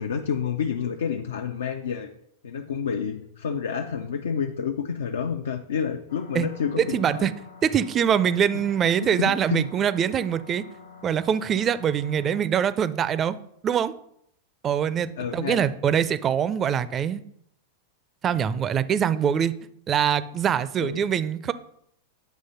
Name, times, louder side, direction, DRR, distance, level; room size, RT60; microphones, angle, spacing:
voice 1, 0.0-2.1 2.4-7.3 8.9-9.7 15.2-15.7 20.8-21.0, left 7 dB, 85° left, 5 dB, 0.5 m, -29 dB
sound 1, 6.1-12.4, left 5 dB, 70° left, 1.0 m, -47 dB
voice 2, 6.8-7.3 7.6-10.6 11.0-13.4 13.6-13.9 14.6-17.2 18.2-19.5 19.9-21.5, right 8 dB, 30° right, 15 dB, 0.4 m, -23 dB
8.2 x 3.1 x 5.6 m, 0.73 s
hypercardioid pair, 110°, 0 cm